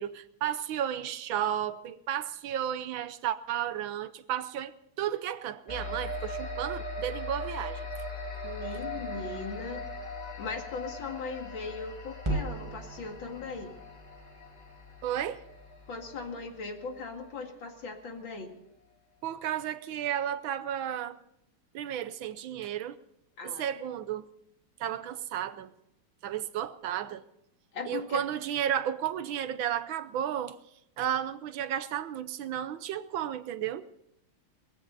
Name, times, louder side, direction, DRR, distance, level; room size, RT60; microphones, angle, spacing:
voice 1, 0.0-7.9 15.0-15.4 19.2-21.2 21.7-23.0 23.4-24.3 24.8-25.7 26.2-27.2 27.8-30.6 31.0-33.8, right 10 dB, 75° right, 1.5 m, -33 dB
sound 1, 5.7-17.5, left 1 dB, 20° left, 2.1 m, -40 dB
voice 2, 8.4-9.9 10.4-13.7 15.9-18.6 23.4-23.7 27.7-28.2, left 4 dB, 70° left, 2.9 m, -39 dB
sound 2, 12.2-16.6, right 1 dB, 15° right, 1.6 m, -39 dB
20.5 x 15.5 x 4.0 m
omnidirectional pair, 2.2 m